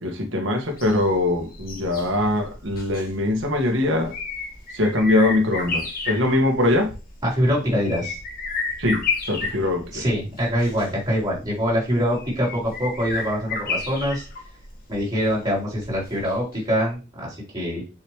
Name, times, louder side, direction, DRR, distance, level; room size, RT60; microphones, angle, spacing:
voice 1, 0.0-4.1 4.7-6.9 8.8-9.0 9.3-10.0, left 2 dB, 65° right, 3 dB, 1.9 m, -22 dB
sound 1, 0.7-16.6 16.9-17.0, left 4 dB, 45° left, 1.8 m, -33 dB
voice 2, 7.2-8.2 9.9-14.3 14.9-17.8, equal, 20° right, -6 dB, 4.0 m, -24 dB
6.9 x 5.5 x 3.3 m, 0.31 s
head